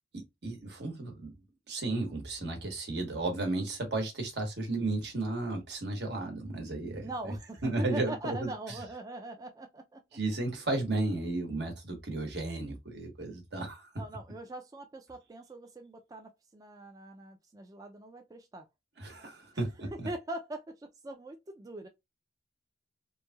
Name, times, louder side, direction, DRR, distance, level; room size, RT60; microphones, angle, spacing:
voice 1, 0.1-1.4 1.7-7.1 7.6-8.5 10.1-14.0 19.0-20.1, right 2 dB, 75° right, 1.1 m, -34 dB
voice 2, 7.0-10.0 14.0-18.7 19.5-19.6 19.9-21.9, right 2 dB, 20° right, 0.3 m, -42 dB
3.0 x 2.6 x 2.2 m
head